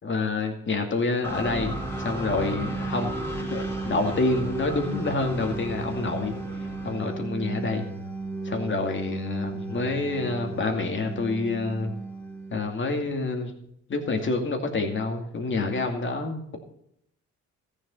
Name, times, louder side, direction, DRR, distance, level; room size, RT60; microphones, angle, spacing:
voice 1, 0.0-1.7 2.0-3.1 3.4-6.3 6.8-7.8 8.4-11.9 12.5-13.5 13.9-16.6, left 3 dB, 40° left, 4 dB, 2.4 m, -27 dB
sound 1, 1.2-13.0, right 2 dB, 10° left, 2.8 m, -34 dB
14.5 x 7.3 x 5.4 m, 0.74 s
cardioid pair, 90°, 30 cm